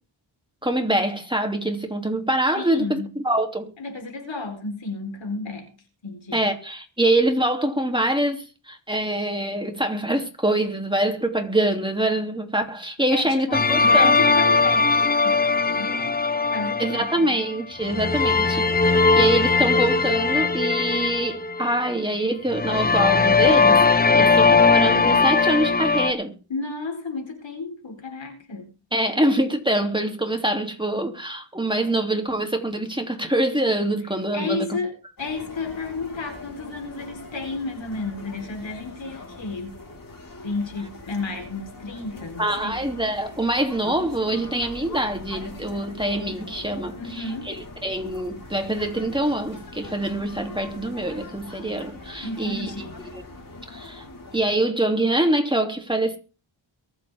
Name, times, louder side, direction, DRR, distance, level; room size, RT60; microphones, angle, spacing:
voice 1, 0.6-3.7 6.3-14.3 16.8-26.3 28.9-34.8 42.4-52.7 53.1-53.2 53.7-54.0 54.3-56.2, right 1 dB, 10° right, 2.9 m, -25 dB
voice 2, 2.5-3.1 3.8-5.7 6.0-6.4 13.1-16.2 16.5-17.4 26.5-28.7 34.3-39.8 40.4-42.9 47.0-47.5 52.2-53.0, left 3 dB, 65° left, 4.1 m, -32 dB
sound 1, 13.5-17.4 17.8-21.9 22.5-26.1, left 4 dB, 20° left, 1.0 m, -19 dB
sound 2, 35.2-54.5, left 2 dB, 40° left, 4.5 m, -41 dB
23.0 x 8.0 x 3.6 m
cardioid pair, 60°, 48 cm